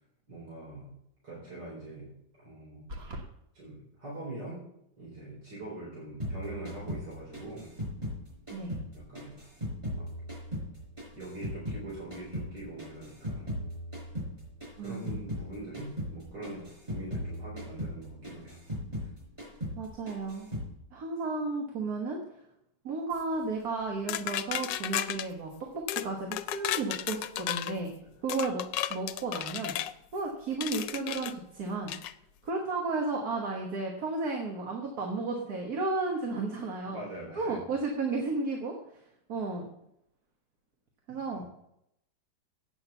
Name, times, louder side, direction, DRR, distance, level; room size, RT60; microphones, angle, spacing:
voice 1, 0.3-0.9 1.2-2.1 2.4-2.9 3.5-4.6 5.0-7.7 8.9-9.4 9.9-10.1 11.1-13.5 14.8-18.6 28.0-28.1 36.9-37.6 41.3-41.4, right 2 dB, 75° right, -7 dB, 4.7 m, -43 dB
sound 1, 2.9-3.3, equal, 40° right, 1.4 m, -39 dB
sound 2, 6.2-8.9 9.1-11.8 12.1-15.5 15.7-16.2 16.4-19.1 19.4-19.8 20.1-20.7, equal, 15° right, 4.5 m, -37 dB
voice 2, 8.5-8.8 14.8-15.2 19.7-20.5 20.9-22.2 22.8-27.9 28.2-28.6 28.9-29.7 30.1-31.9 32.4-37.0 37.4-38.8 39.3-39.7 41.1-41.6, right 3 dB, 60° right, 0 dB, 1.8 m, -33 dB
sound 3, 24.1-25.3 25.9-26.1 26.3-27.7 28.3-29.9 30.6-31.3 31.9-32.1, left 12 dB, 85° left, 1.2 m, -33 dB
8.8 x 7.3 x 7.0 m, 0.77 s
omnidirectional pair, 1.9 m